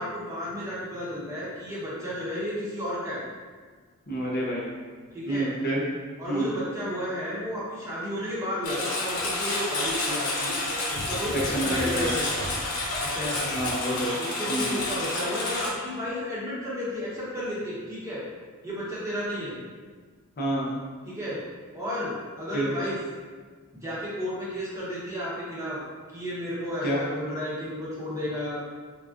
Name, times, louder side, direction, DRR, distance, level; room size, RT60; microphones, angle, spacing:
voice 1, 0.0-3.2 5.1-5.5 6.2-10.6 10.9-12.5 13.0-13.5 14.2-18.2 18.6-19.5 21.0-21.4 21.7-23.0 23.8-25.8 26.1-28.6, equal, 15° right, -8 dB, 0.9 m, -32 dB
voice 2, 4.1-4.7 5.3-5.8 6.3-6.5 11.3-12.1 13.5-14.2 14.5-14.8 20.4-20.8 22.5-22.7 26.8-27.0, right 1 dB, 40° left, -4 dB, 0.6 m, -28 dB
Engine, 8.6-15.7, left 2 dB, 85° left, 0.8 m, -29 dB
3.8 x 3.4 x 2.4 m, 1.5 s
head